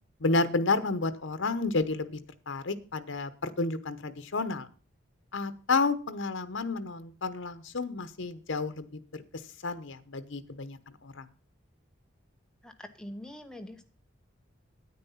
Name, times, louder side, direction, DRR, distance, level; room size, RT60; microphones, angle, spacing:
voice 1, 0.2-2.2 2.5-4.7 5.3-9.2 9.6-11.3, left 3 dB, 75° left, 11 dB, 0.9 m, -31 dB
voice 2, 12.6-13.8, left 1 dB, 5° left, 5 dB, 0.9 m, -44 dB
9.6 x 9.3 x 5.6 m, 0.38 s
head